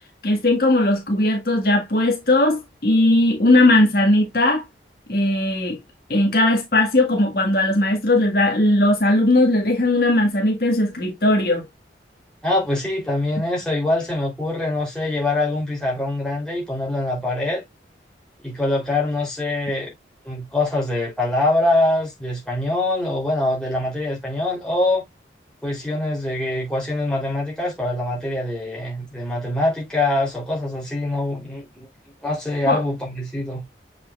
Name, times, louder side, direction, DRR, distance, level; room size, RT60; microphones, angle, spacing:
voice 1, 0.2-4.6 5.1-5.8 6.1-11.6 32.7-32.8, left 1 dB, 55° left, 1.7 m, -18 dB
voice 2, 12.4-17.6 18.4-19.9 20.2-25.0 25.6-31.7 32.2-33.6, left 2 dB, 5° left, 3.4 m, -24 dB
7.1 x 5.6 x 2.4 m
head